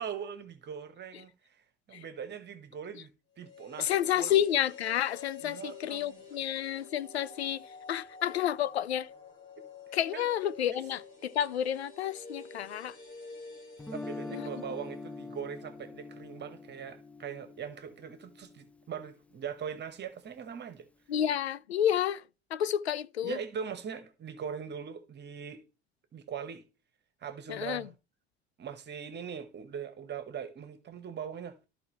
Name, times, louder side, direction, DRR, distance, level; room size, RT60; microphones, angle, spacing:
voice 1, 0.0-1.6 1.9-3.1 3.4-4.3 5.4-6.2 10.1-10.3 11.2-11.3 13.9-20.9 23.2-25.6 26.1-26.6 27.2-27.9 28.6-31.6, right 7 dB, 35° right, 1.2 m, -41 dB
sound 1, 3.4-15.5 15.7-15.8, left 5 dB, 35° left, 3.2 m, -49 dB
voice 2, 3.8-9.1 9.9-13.0 14.3-14.5 21.1-22.2 22.5-23.4 27.5-27.9, left 10 dB, 75° left, 0.5 m, -30 dB
Guitar, 13.8-19.8, left 3 dB, 5° left, 0.4 m, -44 dB
13.5 x 4.7 x 3.1 m
figure-of-eight pair, 60°, 32 cm